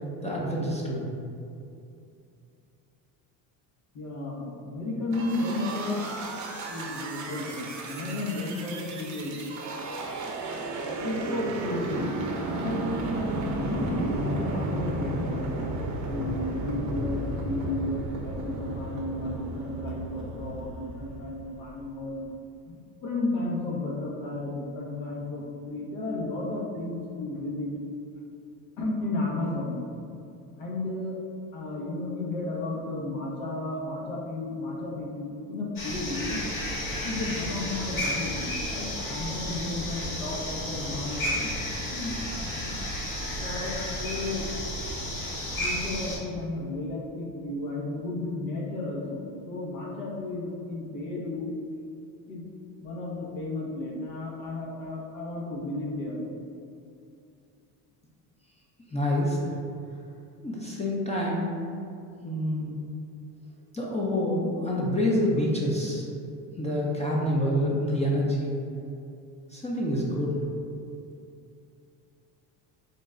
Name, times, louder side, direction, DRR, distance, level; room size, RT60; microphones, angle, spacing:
voice 1, 0.2-1.1 58.9-59.5 60.4-61.5 62.2-62.8 63.7-66.1 66.6-68.6 69.5-70.4, left 1 dB, 15° left, -4 dB, 0.5 m, -27 dB
voice 2, 3.9-6.1 6.7-9.4 11.0-15.6 16.1-22.2 22.7-22.8 23.0-27.7 28.8-29.8 30.6-31.2 31.5-36.4 37.0-41.5 41.9-42.1 42.5-42.8 43.1-44.4 45.6-51.5 52.3-52.5 52.8-56.3, left 2 dB, 80° left, -3 dB, 1.0 m, -33 dB
sound 1, 5.1-21.7, right 2 dB, 40° right, 0.6 m, -33 dB
sound 2, 35.8-46.2, left 1 dB, 50° left, 1.2 m, -32 dB
4.0 x 2.2 x 3.6 m, 2.5 s
supercardioid pair, 95°, 44 cm